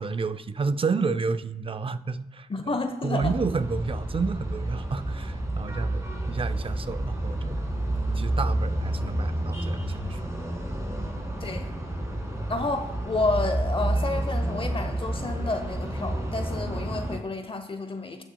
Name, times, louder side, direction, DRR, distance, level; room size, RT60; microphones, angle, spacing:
voice 1, 0.0-2.5 3.0-7.6 8.2-10.3, right 4 dB, 35° right, 11 dB, 0.5 m, -30 dB
voice 2, 2.5-3.3 11.4-11.7 12.5-18.2, left 3 dB, 35° left, 7 dB, 0.7 m, -30 dB
sound 1, 3.2-17.2, right 1 dB, 20° right, 2.0 m, -30 dB
17.0 x 6.0 x 2.3 m, 0.98 s
cardioid pair, 70°, 15 cm